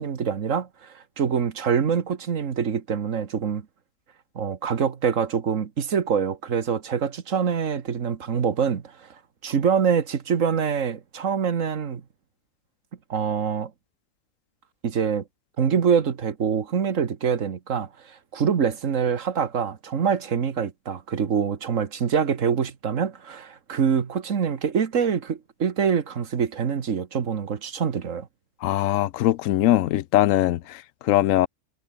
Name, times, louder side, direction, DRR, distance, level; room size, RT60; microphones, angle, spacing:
voice 1, 0.0-3.7 4.3-9.1 9.4-12.0 13.1-13.7 14.8-15.2 15.6-28.3, right 7 dB, 75° right, 1.8 m, -25 dB
voice 2, 28.6-31.5, left 14 dB, 85° left, 1.0 m, -21 dB
omnidirectional pair, 1.3 m